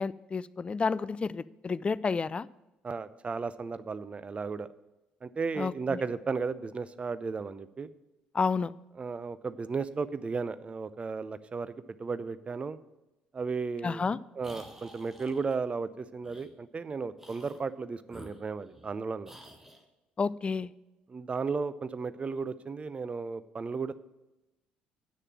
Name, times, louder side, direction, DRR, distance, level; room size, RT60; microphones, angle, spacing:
voice 1, 0.0-2.5 5.6-5.7 8.3-8.7 13.8-14.2 20.2-20.7, left 5 dB, 25° left, 19 dB, 0.3 m, -30 dB
voice 2, 2.8-4.7 5.2-7.9 9.0-11.7 12.0-12.8 13.3-14.0 14.3-19.3 21.1-23.9, right 4 dB, 30° right, 15 dB, 0.5 m, -34 dB
sound 1, 14.4-15.6 16.2-16.5 17.2-17.6 18.1-18.9 19.2-19.8, right 1 dB, 10° right, 1.5 m, -50 dB
8.7 x 6.6 x 7.5 m, 0.99 s
figure-of-eight pair, 55°, 4 cm